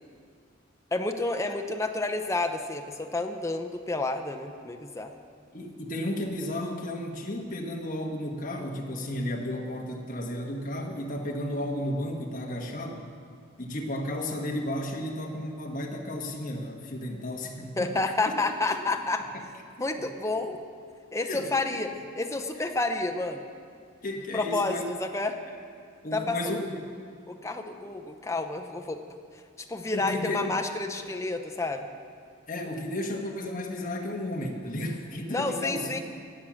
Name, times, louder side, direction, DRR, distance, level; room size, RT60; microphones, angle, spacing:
voice 1, 0.9-5.1 17.8-19.3 19.8-20.6 21.1-23.5 24.3-25.4 26.1-26.6 27.3-29.0 29.7-31.9 35.3-36.0, left 2 dB, 15° left, 6 dB, 0.6 m, -30 dB
voice 2, 5.5-13.1 13.6-18.0 18.7-18.8 19.3-19.4 20.0-20.1 21.3-21.8 22.6-22.7 24.0-24.8 26.0-26.9 29.9-30.6 32.5-36.0, left 1 dB, 40° left, 0 dB, 1.4 m, -33 dB
17.5 x 7.4 x 6.3 m, 2.1 s
head